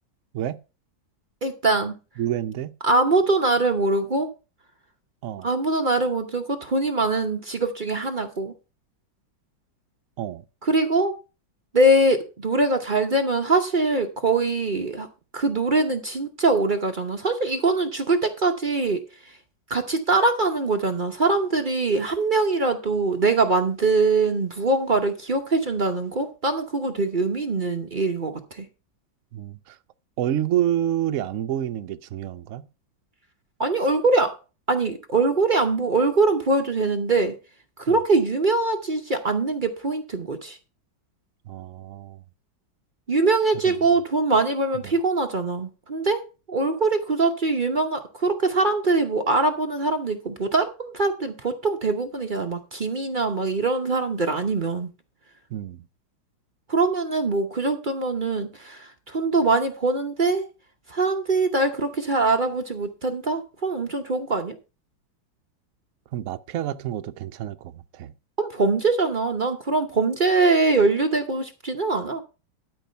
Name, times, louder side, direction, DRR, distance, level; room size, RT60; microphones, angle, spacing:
voice 1, 1.4-1.9 2.8-4.3 5.4-8.5 10.7-11.1 11.7-15.1 15.3-19.0 19.7-28.6 33.6-34.3 34.7-37.3 37.8-40.6 43.1-46.2 46.5-54.9 56.7-60.5 60.9-64.5 68.4-72.2, right 3 dB, 45° right, 0.7 m, -23 dB
voice 2, 2.2-2.7 5.2-5.5 10.2-10.4 29.3-29.8 30.2-32.7 37.9-38.0 41.5-42.2 43.6-43.9 44.8-44.9 55.5-55.8 66.1-68.1, right 11 dB, 80° right, 0.7 m, -28 dB
12.5 x 4.9 x 5.5 m
omnidirectional pair, 2.1 m